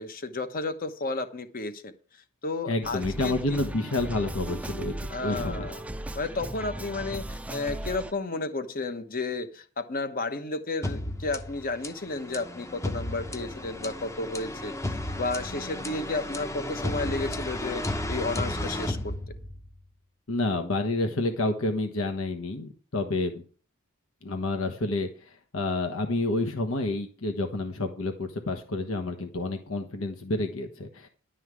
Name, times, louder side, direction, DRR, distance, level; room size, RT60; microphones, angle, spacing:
voice 1, 0.0-1.9 2.4-3.4 5.1-5.8 6.1-14.7 15.2-19.1, left 3 dB, 45° left, 10 dB, 1.1 m, -32 dB
voice 2, 2.7-5.7 20.3-23.4 24.2-31.1, left 2 dB, 70° left, 4 dB, 1.2 m, -29 dB
sound 1, 2.8-8.1, right 1 dB, 5° right, 0.5 m, -37 dB
sound 2, 10.8-19.8, left 1 dB, 15° left, 0.8 m, -33 dB
11.0 x 5.6 x 8.3 m, 0.41 s
head